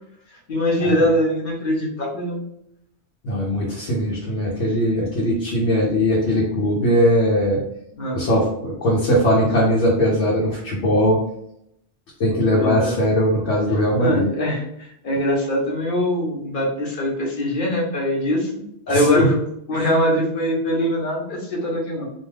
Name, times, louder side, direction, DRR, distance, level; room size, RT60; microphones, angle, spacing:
voice 1, 0.5-2.4 7.9-8.2 12.5-13.0 14.0-19.4 19.7-22.1, left 1 dB, 55° left, -2 dB, 0.9 m, -22 dB
voice 2, 3.2-7.6 8.1-11.2 12.2-14.3 18.9-19.3 19.7-19.9, equal, 85° left, -4 dB, 1.0 m, -20 dB
2.4 x 2.3 x 3.2 m, 0.76 s
omnidirectional pair, 1.1 m